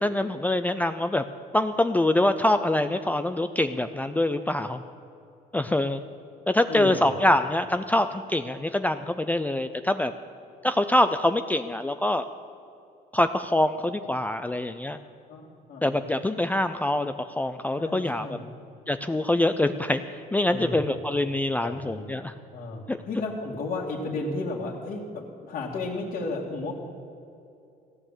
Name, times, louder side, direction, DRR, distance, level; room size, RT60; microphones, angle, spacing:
voice 1, 0.0-1.2 1.5-4.8 5.5-6.0 6.5-10.1 10.6-12.3 13.1-15.0 15.8-18.4 18.9-20.0 20.3-22.3 22.9-23.0, left 1 dB, 10° left, 9 dB, 0.5 m, -24 dB
voice 2, 6.7-7.2 15.3-15.9 17.8-18.5 20.5-20.9 21.6-22.1 22.5-26.7, left 2 dB, 55° left, -5 dB, 2.3 m, -33 dB
16.0 x 8.8 x 7.5 m, 2.6 s
cardioid pair, 110°, 17 cm